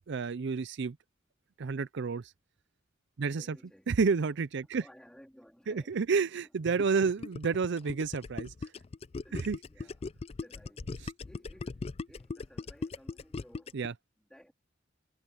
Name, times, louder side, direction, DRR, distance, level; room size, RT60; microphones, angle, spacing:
voice 1, 0.1-1.0 1.6-2.3 3.2-3.6 3.9-4.8 5.7-8.7 9.3-9.6 13.7-13.9, right 5 dB, 65° right, 0.5 m, -30 dB
voice 2, 3.3-3.9 4.8-6.3 9.2-13.8 14.2-14.5, equal, 5° left, 3.8 m, -58 dB
Gurgling, 6.8-13.9, left 3 dB, 30° left, 0.4 m, -39 dB
head